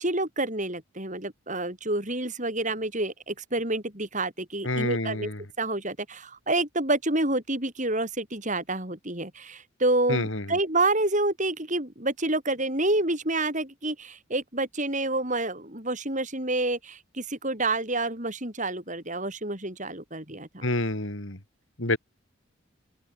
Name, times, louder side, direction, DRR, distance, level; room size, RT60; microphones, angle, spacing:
voice 1, 0.0-5.3 5.6-20.7, right 2 dB, 35° right, 4.7 m, -28 dB
voice 2, 4.6-5.4 10.1-10.4 20.6-21.4 21.8-22.0, left 2 dB, 65° left, 3.3 m, -28 dB
open air
head